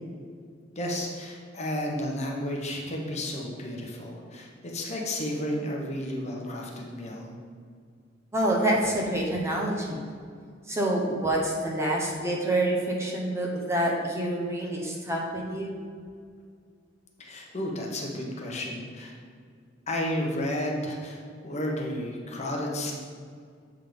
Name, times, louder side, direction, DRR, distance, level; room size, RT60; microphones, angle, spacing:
voice 1, 0.7-7.3 17.2-19.2 19.9-22.9, left 1 dB, 35° left, -1 dB, 1.0 m, -32 dB
voice 2, 8.3-10.1 10.7-15.8, right 1 dB, 15° right, -1 dB, 0.8 m, -27 dB
7.7 x 3.7 x 5.1 m, 2.1 s
head